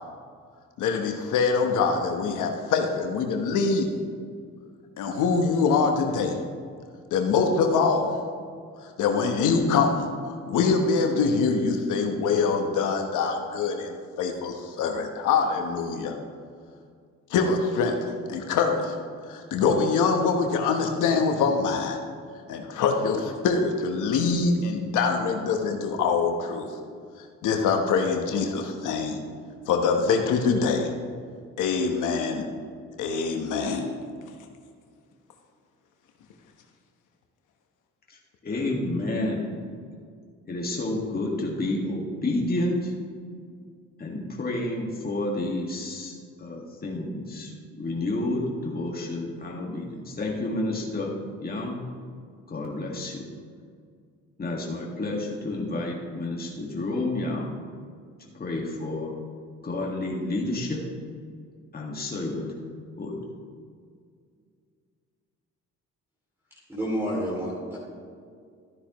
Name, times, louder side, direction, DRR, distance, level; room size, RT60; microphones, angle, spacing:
voice 1, 0.8-3.9 5.0-6.4 7.1-8.1 9.0-16.1 17.3-19.0 19.3-22.0 22.5-26.7 27.4-29.2 29.7-30.9 31.6-32.5 33.0-33.9, left 5 dB, 85° left, 4 dB, 1.1 m, -24 dB
voice 2, 38.1-39.6 40.5-42.9 44.0-51.1 51.4-51.8 52.5-53.2 54.4-57.5 58.3-59.1 59.6-60.8 61.7-62.5 63.0-63.2, left 2 dB, 30° left, -2 dB, 1.9 m, -30 dB
voice 3, 66.7-67.8, equal, 10° right, -6 dB, 2.6 m, -29 dB
13.0 x 9.8 x 3.1 m, 2.1 s
cardioid pair, 90°, 30 cm